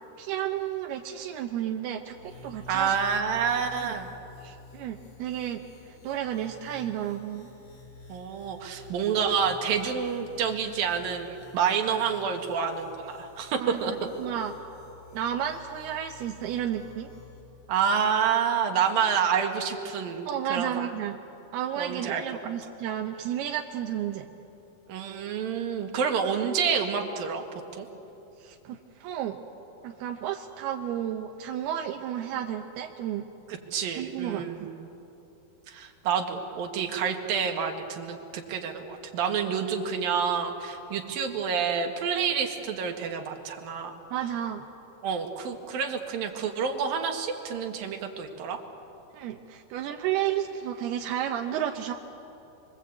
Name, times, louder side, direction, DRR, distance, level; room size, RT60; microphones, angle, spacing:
voice 1, 0.2-3.0 3.8-3.9 4.4-7.5 13.6-14.6 15.1-17.1 20.3-21.2 21.5-24.3 28.4-29.4 29.8-33.3 34.0-34.7 44.1-44.7 49.1-51.9, right 10 dB, 85° right, 3 dB, 3.0 m, -32 dB
sound 1, 2.0-17.4, left 3 dB, 40° left, 4.6 m, -50 dB
voice 2, 2.7-4.1 8.1-13.9 17.7-20.9 21.8-22.2 24.9-27.4 27.7-27.9 33.5-34.7 35.7-44.0 45.0-48.6, right 7 dB, 70° right, 3 dB, 3.6 m, -28 dB
29.5 x 23.5 x 8.4 m, 2.9 s
omnidirectional pair, 4.4 m